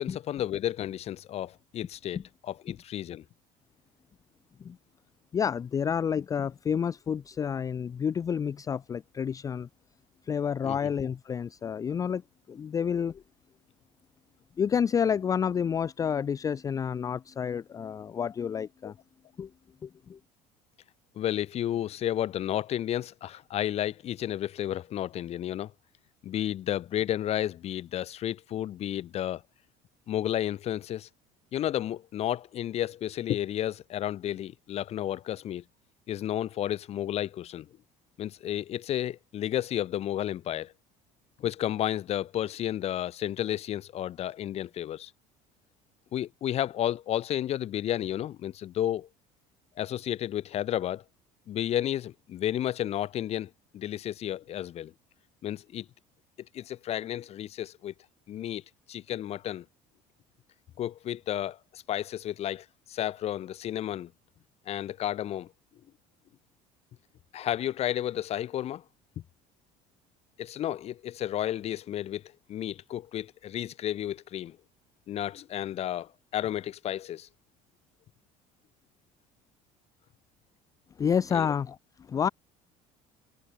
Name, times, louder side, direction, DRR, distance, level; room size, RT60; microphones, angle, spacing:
voice 1, 0.0-3.2 10.6-10.9 18.8-18.9 21.2-25.7 26.2-29.4 30.1-31.1 31.5-35.6 36.1-37.7 38.2-40.7 41.4-45.1 46.1-49.1 49.8-51.0 51.5-54.9 55.4-55.9 56.5-57.9 58.3-58.6 58.9-59.6 60.8-64.1 64.7-65.5 67.3-68.8 70.4-72.2 72.5-74.6 75.1-77.3 81.3-81.5, left 11 dB, 45° left, 4.0 m, -32 dB
voice 2, 5.3-9.7 10.3-12.2 12.5-13.2 14.6-18.9 19.4-19.5 19.8-20.2 81.0-81.8 82.1-82.3, left 7 dB, 25° left, 0.5 m, -29 dB
cardioid pair, 145°, 15 cm